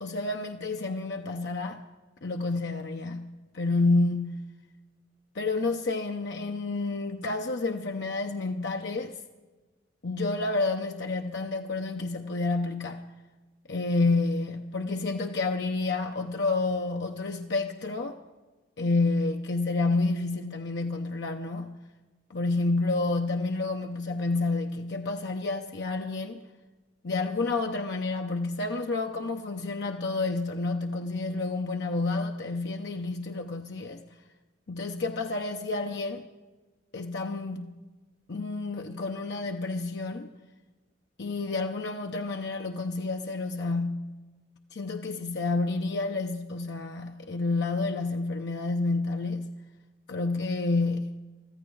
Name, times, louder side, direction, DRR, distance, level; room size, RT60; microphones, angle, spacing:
voice 1, 0.0-1.8 2.2-4.5 5.3-9.1 10.0-13.1 13.7-18.2 18.8-21.8 22.3-26.4 27.0-34.0 34.7-36.3 36.9-37.8 38.3-40.3 41.2-44.1 44.7-49.5 50.1-51.1, left 3 dB, 65° left, 0.7 m, -29 dB
24.5 x 14.0 x 3.9 m
head